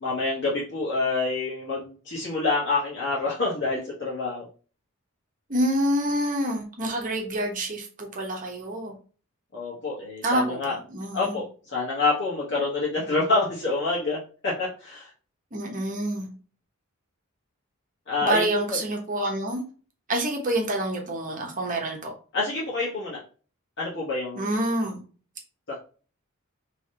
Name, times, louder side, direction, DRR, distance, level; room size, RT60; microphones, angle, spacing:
voice 1, 0.0-4.4 9.5-10.8 11.1-15.1 18.1-18.4 18.7-18.8 22.3-23.2 23.8-24.6 25.7-25.8, left 3 dB, 55° left, -6 dB, 1.3 m, -27 dB
voice 2, 5.5-8.9 10.2-11.4 15.5-16.3 18.2-19.6 20.1-22.1 24.3-25.0, right 1 dB, 35° right, 2 dB, 1.1 m, -27 dB
3.5 x 3.1 x 4.2 m, 0.38 s
head